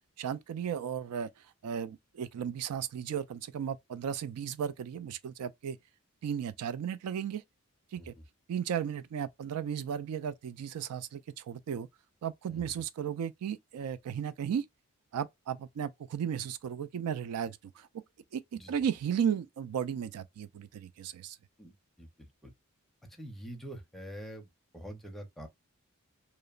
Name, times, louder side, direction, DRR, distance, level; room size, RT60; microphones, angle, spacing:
voice 1, 0.2-1.3 1.6-5.8 6.2-7.4 7.9-8.1 8.5-11.9 12.2-14.7 15.1-17.9 18.3-21.4, right 8 dB, 85° right, 0.3 m, -35 dB
voice 2, 21.6-22.5 23.1-25.5, right 1 dB, ahead, 0.5 m, -46 dB
2.9 x 2.0 x 2.3 m
head